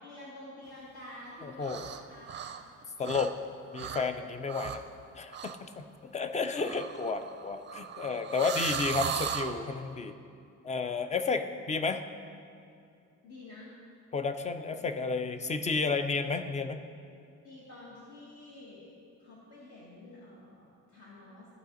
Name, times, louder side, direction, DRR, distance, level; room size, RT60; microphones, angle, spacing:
voice 1, 0.0-1.8 2.1-2.7 13.2-13.7 14.7-14.8 17.2-18.9 19.2-21.5, left 1 dB, 60° left, -7 dB, 1.7 m, -49 dB
voice 2, 1.4-1.9 3.0-3.3 3.7-4.8 5.2-5.8 6.1-10.2 10.6-12.0 14.1-16.8, left 4 dB, 25° left, 8 dB, 0.4 m, -32 dB
sound 1, 1.6-2.0 2.3-3.5 3.7-4.0 4.5-4.9 5.3-5.6 6.6-9.6, right 7 dB, 35° right, 0.4 m, -37 dB
15.0 x 5.1 x 3.9 m, 2.5 s
cardioid pair, 145°, 31 cm